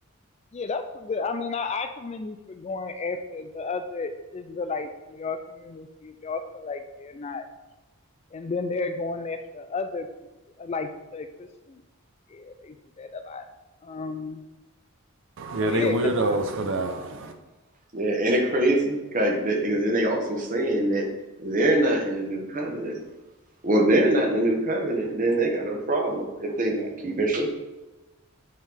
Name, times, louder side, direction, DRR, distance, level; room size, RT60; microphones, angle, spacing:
voice 1, 0.5-7.5 8.3-10.1 10.6-11.8 12.3-13.4 13.8-14.4 15.6-16.6, left 4 dB, 30° left, 8 dB, 0.3 m, -33 dB
voice 2, 15.4-17.3, right 1 dB, 60° right, 6 dB, 0.6 m, -26 dB
voice 3, 17.9-21.0 21.4-23.0 23.6-27.5, right 1 dB, 35° right, 1 dB, 1.0 m, -24 dB
8.8 x 3.8 x 3.4 m, 1.1 s
head